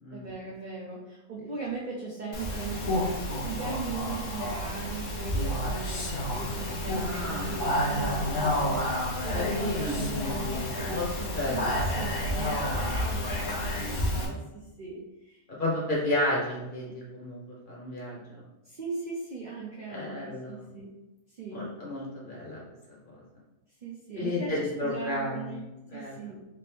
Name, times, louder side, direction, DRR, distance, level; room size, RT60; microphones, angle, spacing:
voice 1, 0.1-15.4 18.6-21.0 21.3-21.7 23.8-26.4, right 4 dB, 55° right, -4 dB, 0.5 m, -39 dB
Speech, 2.3-14.3, left 1 dB, 70° left, 1.1 m, -30 dB
voice 2, 6.9-7.6 9.3-10.1 10.5-11.8 15.5-18.4 19.9-20.6 21.5-22.6 23.1-23.2 24.2-25.6 25.9-26.2, left 1 dB, 40° left, -5 dB, 1.1 m, -32 dB
3.4 x 2.6 x 3.3 m, 1.0 s
omnidirectional pair, 1.4 m